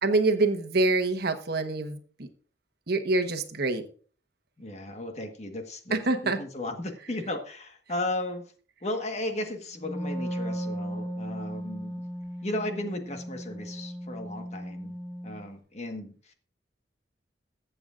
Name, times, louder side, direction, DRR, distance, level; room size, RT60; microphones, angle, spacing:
voice 1, 0.0-2.3 2.9-3.8 5.9-6.4, right 2 dB, 60° right, 6 dB, 1.2 m, -26 dB
voice 2, 4.6-8.5 8.8-12.0 12.4-15.0 15.2-16.3, left 1 dB, 40° left, 5 dB, 1.5 m, -35 dB
Wind instrument woodwind instrument, 9.8-15.5, equal, 5° left, 5.4 m, -36 dB
22.0 x 8.0 x 2.5 m, 0.42 s
head